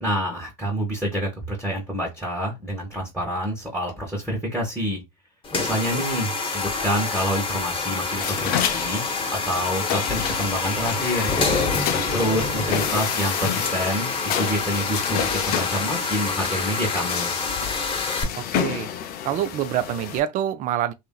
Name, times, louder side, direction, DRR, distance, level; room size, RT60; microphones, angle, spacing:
voice 1, 0.0-5.0 5.6-9.0 9.3-11.3 12.1-14.1 14.4-17.3, equal, 5° right, 1.0 m, -27 dB
sound 1, 5.4-18.2, left 4 dB, 25° left, 0.8 m, -27 dB
sound 2, 8.2-20.2, left 9 dB, 45° left, 0.5 m, -29 dB
voice 2, 18.4-18.9 19.2-20.9, right 11 dB, 40° right, 0.4 m, -26 dB
2.8 x 2.6 x 2.2 m
hypercardioid pair, 85°, 21 cm